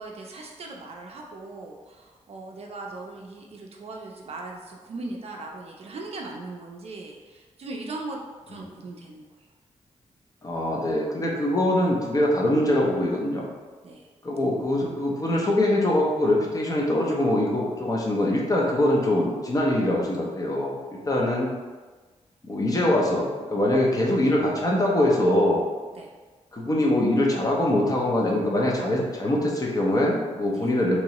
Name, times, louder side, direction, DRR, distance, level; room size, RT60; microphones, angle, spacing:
voice 1, 0.0-8.2 8.5-9.3 13.8-14.1 21.1-21.2 26.0-26.1 30.5-30.7, right 2 dB, 55° right, 0 dB, 0.4 m, -39 dB
voice 2, 10.4-13.5 14.2-20.8 21.1-21.5 22.5-25.6 26.5-31.0, left 1 dB, 30° left, -2 dB, 0.6 m, -23 dB
3.0 x 2.7 x 2.9 m, 1.3 s
wide cardioid pair, 120°, 12 cm